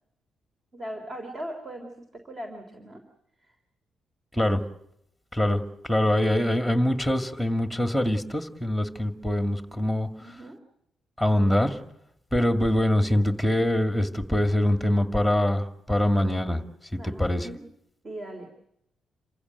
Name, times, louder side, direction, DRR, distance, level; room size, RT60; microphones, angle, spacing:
voice 1, 0.7-3.0 10.2-10.6 17.0-17.6 18.0-18.5, right 1 dB, 35° right, 5 dB, 3.6 m, -39 dB
voice 2, 5.3-10.1 11.2-11.8 12.3-16.6 16.9-17.5, left 1 dB, 5° right, 8 dB, 2.2 m, -24 dB
28.0 x 16.0 x 9.3 m, 0.77 s
cardioid pair, 115°, 0 cm